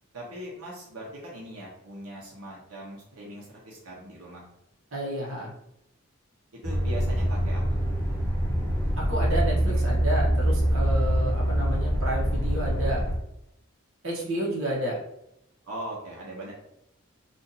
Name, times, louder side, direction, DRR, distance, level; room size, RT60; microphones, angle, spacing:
voice 1, 0.1-4.4 6.5-7.8 15.6-16.5, right 1 dB, 90° right, -4 dB, 0.8 m, -40 dB
voice 2, 4.9-5.5 9.0-13.0 14.0-15.0, right 1 dB, 65° right, -3 dB, 1.0 m, -31 dB
sound 1, 6.6-13.1, equal, 10° left, 0.8 m, -25 dB
2.7 x 2.5 x 3.9 m, 0.81 s
head